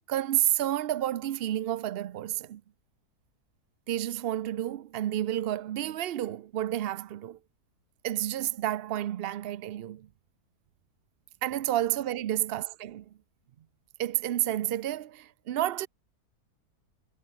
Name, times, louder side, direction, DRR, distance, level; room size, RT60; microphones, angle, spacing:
voice 1, 0.1-2.6 3.9-7.4 8.0-10.1 11.4-13.1 14.0-15.9, right 13 dB, 80° right, 0.5 m, -30 dB
omnidirectional pair, 1.7 m